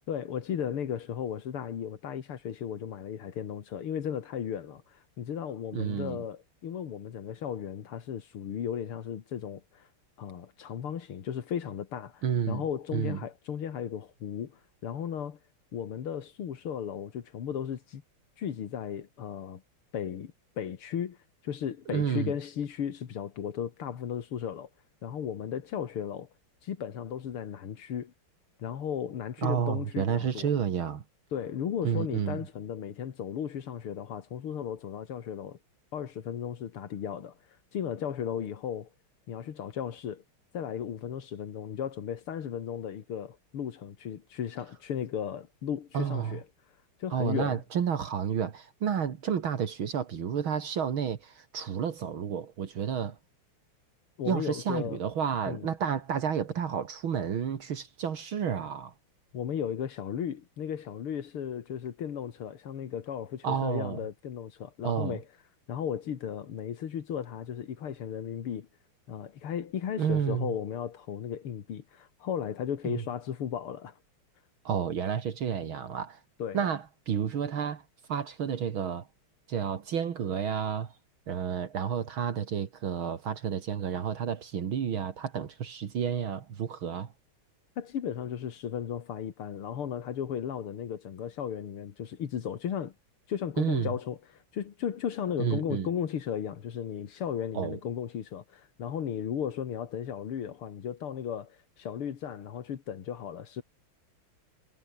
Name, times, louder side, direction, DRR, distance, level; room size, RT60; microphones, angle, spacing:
voice 1, 0.1-9.9 10.2-15.4 15.7-18.0 18.4-19.6 19.9-21.2 21.4-24.7 25.0-26.3 26.6-28.1 28.6-30.5 31.3-35.6 35.9-37.4 37.7-38.9 39.3-40.2 40.5-46.4 47.0-47.6 54.2-55.0 55.5-55.7 59.3-65.2 65.7-68.7 69.1-74.0 76.4-76.6 87.8-92.9 93.3-103.6, left 8 dB, 85° left, 2.6 m, -35 dB
voice 2, 5.7-6.2 12.2-12.6 12.9-13.2 21.9-22.3 29.4-31.0 31.8-32.4 45.9-46.4 47.1-53.2 54.3-58.9 63.4-64.0 64.8-65.2 70.0-70.5 72.8-73.0 74.6-76.2 76.5-77.8 78.1-79.1 79.5-80.9 81.3-87.1 93.6-93.9 95.4-95.9 97.5-97.8, right 8 dB, 70° right, 2.5 m, -31 dB
omnidirectional pair, 2.3 m